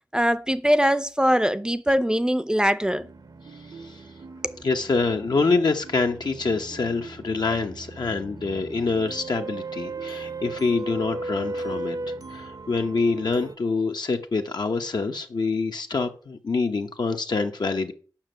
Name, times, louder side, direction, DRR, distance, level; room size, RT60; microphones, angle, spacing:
voice 1, 0.1-3.1, equal, 10° right, 0.5 m, -22 dB
sound 1, 2.9-13.5, right 3 dB, 55° right, 0.7 m, -37 dB
voice 2, 3.6-4.0 4.6-12.0 12.3-17.9, left 4 dB, 65° left, 0.9 m, -26 dB
7.3 x 6.0 x 7.6 m
wide cardioid pair, 100°, 8 cm